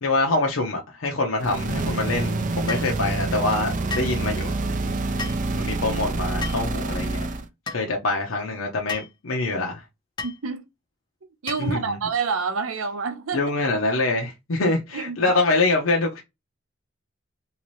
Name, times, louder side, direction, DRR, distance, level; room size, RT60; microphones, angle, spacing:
voice 1, 0.0-4.5 5.5-7.2 7.7-9.8 11.6-12.0 13.3-16.2, left 2 dB, 75° left, 0.7 m, -25 dB
sound 1, 1.4-7.5, right 2 dB, 40° right, 0.4 m, -27 dB
sound 2, 2.7-2.9 3.9-4.2 5.2-5.4 6.4-6.7 7.7-7.8 8.9-9.1 10.2-10.4 11.5-11.8, left 4 dB, 20° left, 0.5 m, -33 dB
voice 2, 10.2-10.7 11.4-13.4 14.9-15.4, right 5 dB, 80° right, 0.7 m, -28 dB
3.0 x 2.8 x 3.0 m
head